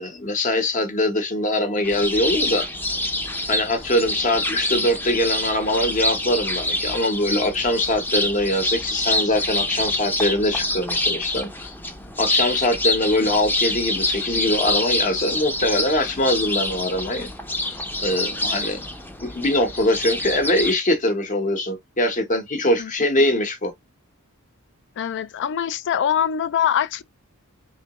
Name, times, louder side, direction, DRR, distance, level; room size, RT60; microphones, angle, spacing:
voice 1, 0.0-2.7 3.5-11.7 12.2-17.3 17.7-18.8 19.2-23.7, left 1 dB, 35° left, 0.9 m, -22 dB
sound 1, 1.8-20.7, left 1 dB, 10° left, 0.6 m, -26 dB
voice 2, 25.0-27.0, left 9 dB, 55° left, 0.4 m, -23 dB
3.7 x 3.2 x 2.9 m
head